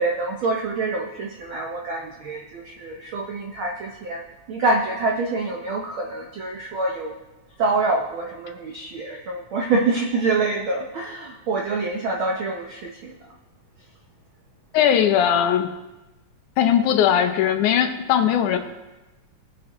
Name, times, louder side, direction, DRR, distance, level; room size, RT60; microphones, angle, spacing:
voice 1, 0.0-4.2 4.5-7.1 7.6-13.1, right 3 dB, 80° right, 0 dB, 1.1 m, -26 dB
voice 2, 14.7-15.7 16.6-18.6, left 9 dB, 85° left, 7 dB, 2.3 m, -19 dB
19.0 x 6.5 x 3.0 m, 1.1 s
omnidirectional pair, 3.4 m